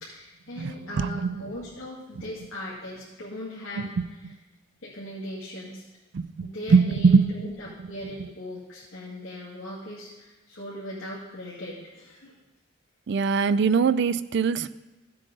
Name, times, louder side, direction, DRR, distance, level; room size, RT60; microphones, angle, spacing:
voice 1, 0.0-4.2 4.8-5.8 6.4-12.4, left 1 dB, 70° left, -7 dB, 2.2 m, -39 dB
voice 2, 0.6-1.4 3.8-3.9 6.1-7.4 8.2-8.3 13.1-14.7, right 5 dB, 55° right, 15 dB, 0.3 m, -22 dB
14.0 x 7.6 x 3.8 m, 1.1 s
head